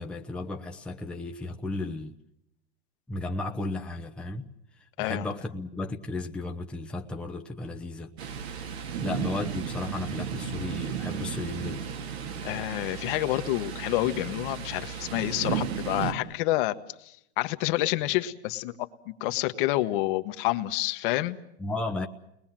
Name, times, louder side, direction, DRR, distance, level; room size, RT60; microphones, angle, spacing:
voice 1, 0.0-2.1 3.1-4.5 4.8-8.1 9.0-11.9 21.6-22.1, left 2 dB, 5° left, 2 dB, 0.9 m, -34 dB
Thunder, 8.2-16.1, right 7 dB, 65° right, 2.7 m, -34 dB
voice 2, 12.4-21.4, left 16 dB, 50° left, 9 dB, 1.3 m, -28 dB
29.5 x 20.5 x 7.5 m, 0.78 s
supercardioid pair, 145°, 33 cm